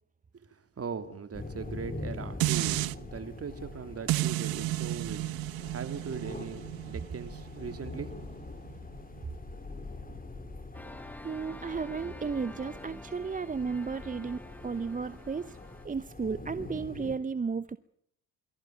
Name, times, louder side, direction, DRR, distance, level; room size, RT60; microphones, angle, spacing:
voice 1, 0.5-5.3 5.7-8.1, right 6 dB, 40° right, 9 dB, 3.0 m, -39 dB
sound 1, 1.3-17.2, left 2 dB, 25° left, 3.3 m, -44 dB
sound 2, 2.4-2.9 4.1-9.2 9.7-9.8, right 18 dB, 70° right, 0.9 m, -33 dB
sound 3, 10.7-15.9, left 1 dB, 5° left, 2.9 m, -48 dB
voice 2, 11.2-15.6 15.8-17.8, right 5 dB, 20° right, 15 dB, 0.8 m, -34 dB
23.0 x 16.0 x 9.3 m, 0.71 s
supercardioid pair, 65°, 37 cm